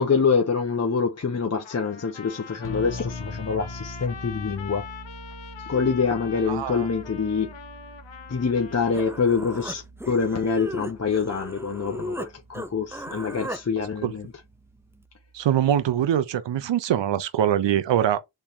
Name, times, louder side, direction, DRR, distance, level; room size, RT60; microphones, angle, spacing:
voice 1, 0.0-4.8 5.7-7.5 8.3-14.2, left 5 dB, 35° left, 0.9 m, -25 dB
Trumpet, 1.6-9.4, left 7 dB, 85° left, 1.1 m, -43 dB
sound 1, 2.6-16.1, left 1 dB, 60° left, 1.4 m, -43 dB
voice 2, 6.5-6.9 14.0-14.1 15.3-18.2, right 10 dB, 75° right, 0.8 m, -23 dB
Human voice, 8.6-8.7 8.9-12.3 12.5-13.6, equal, 5° right, 0.5 m, -36 dB
3.6 x 3.4 x 4.3 m
cardioid pair, 70°, 44 cm